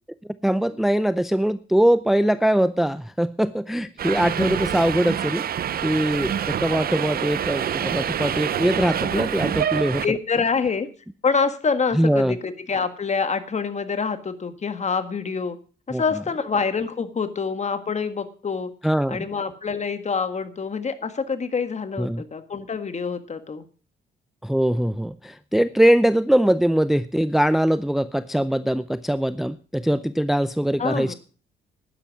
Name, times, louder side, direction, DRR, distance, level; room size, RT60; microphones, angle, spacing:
voice 1, 0.4-5.4 5.8-10.0 11.9-12.4 15.9-16.0 18.8-19.3 22.0-22.2 24.4-31.1, right 1 dB, ahead, 14 dB, 0.5 m, -22 dB
Subway metro underground, 4.0-10.1, right 9 dB, 50° right, 0.6 m, -26 dB
voice 2, 10.0-10.9 11.2-15.6 15.9-18.7 19.1-23.6 30.8-31.1, left 5 dB, 35° left, 11 dB, 1.7 m, -26 dB
12.0 x 10.0 x 6.0 m, 0.39 s
cardioid pair, 90°, 20 cm